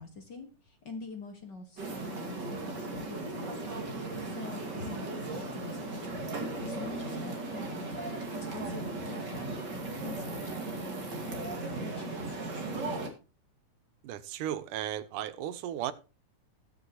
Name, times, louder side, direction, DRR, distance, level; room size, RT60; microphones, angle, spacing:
voice 1, 0.0-3.6 4.2-6.2 6.6-7.8 8.3-12.2, left 4 dB, 45° left, 1.7 m, -45 dB
sound 1, 1.8-13.1, right 2 dB, 35° right, 2.6 m, -37 dB
voice 2, 14.0-15.9, right 11 dB, 85° right, 2.4 m, -35 dB
19.5 x 6.9 x 2.9 m
omnidirectional pair, 3.5 m